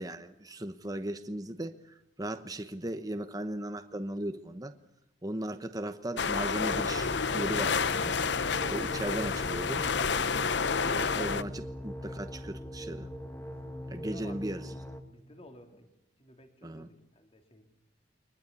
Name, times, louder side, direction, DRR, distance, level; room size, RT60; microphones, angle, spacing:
voice 1, 0.0-4.7 5.2-8.2 8.7-9.8 10.8-13.1 13.9-14.7 16.6-16.9, right 1 dB, 20° right, 1.1 m, -37 dB
sound 1, 6.2-11.4, left 5 dB, 65° left, 0.8 m, -29 dB
sound 2, 6.6-15.0, equal, 10° left, 1.8 m, -41 dB
voice 2, 13.5-14.4 15.1-15.9 16.2-17.7, left 1 dB, 30° left, 3.8 m, -54 dB
23.5 x 20.5 x 8.5 m
head